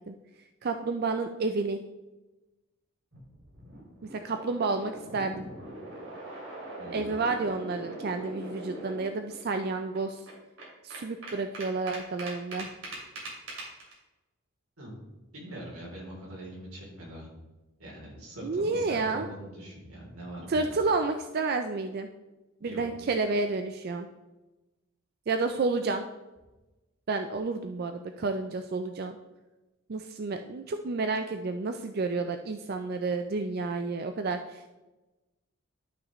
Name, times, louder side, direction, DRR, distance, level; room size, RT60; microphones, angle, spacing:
voice 1, 0.6-1.8 4.1-5.5 6.9-10.2 10.8-12.7 18.4-19.3 20.5-22.1 22.6-24.1 25.3-26.1 27.1-29.2 29.9-34.7, right 3 dB, 45° right, 7 dB, 0.4 m, -30 dB
sound 1, 3.1-9.4 9.6-9.7 9.9-13.9, right 1 dB, 65° right, 2.9 m, -42 dB
voice 2, 6.8-7.2 14.8-14.9 15.3-17.3 17.8-20.7 22.6-22.8, right 1 dB, 90° right, -2 dB, 3.1 m, -43 dB
12.0 x 5.9 x 3.1 m, 1.1 s
head